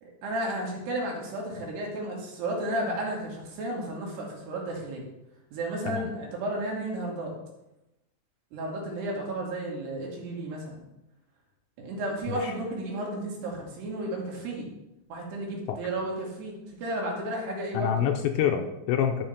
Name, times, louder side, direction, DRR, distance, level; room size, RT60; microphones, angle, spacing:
voice 1, 0.0-5.1 5.5-7.4 8.5-10.8 11.8-14.7 15.1-18.1, right 1 dB, 65° right, -2 dB, 4.4 m, -33 dB
voice 2, 17.7-19.3, left 9 dB, 80° left, 5 dB, 2.8 m, -27 dB
12.5 x 6.9 x 5.8 m, 0.92 s
omnidirectional pair, 5.5 m